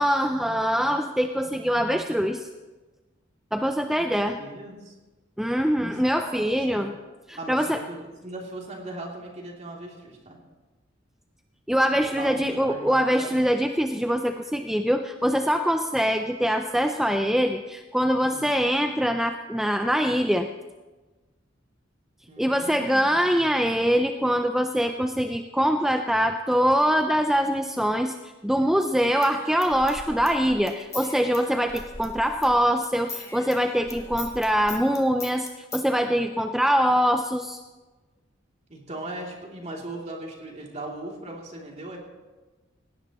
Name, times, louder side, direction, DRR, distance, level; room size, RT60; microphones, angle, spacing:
voice 1, 0.0-2.5 3.5-4.4 5.4-6.9 7.3-7.8 11.7-20.5 22.4-37.6, equal, ahead, 5 dB, 0.4 m, -23 dB
voice 2, 3.9-4.9 5.8-6.9 7.4-10.4 11.9-13.4 18.2-18.5 22.3-23.5 38.7-42.0, right 2 dB, 35° right, -1 dB, 2.9 m, -39 dB
Human voice / Scissors, 28.8-32.6 32.8-35.9, left 3 dB, 15° left, 1.4 m, -41 dB
18.0 x 18.0 x 3.1 m, 1.2 s
head